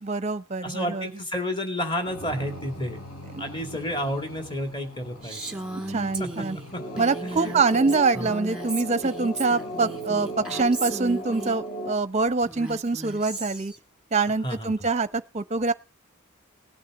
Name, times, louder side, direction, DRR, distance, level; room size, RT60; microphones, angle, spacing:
voice 1, 0.0-1.1 3.3-3.4 5.7-6.6 7.0-13.7 14.1-15.7, right 4 dB, 30° right, 0.6 m, -25 dB
voice 2, 0.6-3.0 3.4-5.4 6.2-6.3 6.7-6.8 7.2-7.5 7.8-8.3 14.4-14.7, equal, 20° left, 2.3 m, -31 dB
sound 1, 2.1-11.9, left 1 dB, 75° left, 6.1 m, -45 dB
Female speech woman speaking, 5.2-11.6 12.4-13.8, right 2 dB, 5° right, 1.6 m, -36 dB
sound 2, 6.8-11.9, right 1 dB, 40° left, 2.1 m, -36 dB
18.5 x 8.8 x 6.2 m
head